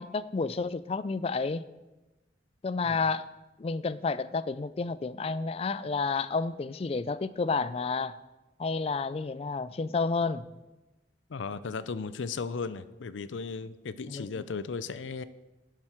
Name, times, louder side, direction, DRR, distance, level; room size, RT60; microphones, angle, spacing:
voice 1, 0.0-1.7 2.6-3.2 3.6-8.1 8.6-10.4 14.1-14.2, left 4 dB, 30° left, 0.3 m, -30 dB
voice 2, 11.3-15.2, left 4 dB, 85° left, 0.5 m, -36 dB
12.0 x 7.5 x 4.5 m
head